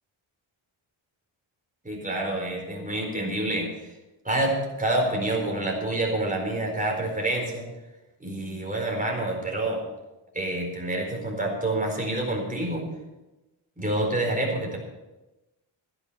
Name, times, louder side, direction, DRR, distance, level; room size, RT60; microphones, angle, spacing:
voice 1, 1.8-3.9 4.2-7.7 8.2-9.8 10.3-12.9 13.8-14.8, right 1 dB, 15° right, 0 dB, 4.4 m, -27 dB
13.5 x 10.5 x 5.7 m, 1.0 s
wide cardioid pair, 100°, 48 cm